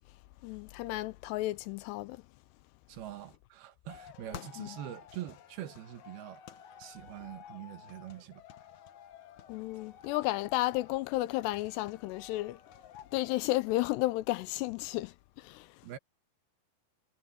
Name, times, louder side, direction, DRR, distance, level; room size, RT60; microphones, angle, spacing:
voice 1, 0.4-2.2 4.6-4.8 9.5-12.6 13.1-15.9, left 18 dB, 85° left, 2.6 m, -33 dB
voice 2, 2.9-6.4 6.8-8.4 15.8-16.0, right 12 dB, 70° right, 3.1 m, -44 dB
sound 1, 3.9-13.9, left 9 dB, 65° left, 1.9 m, -52 dB
omnidirectional pair, 5.0 m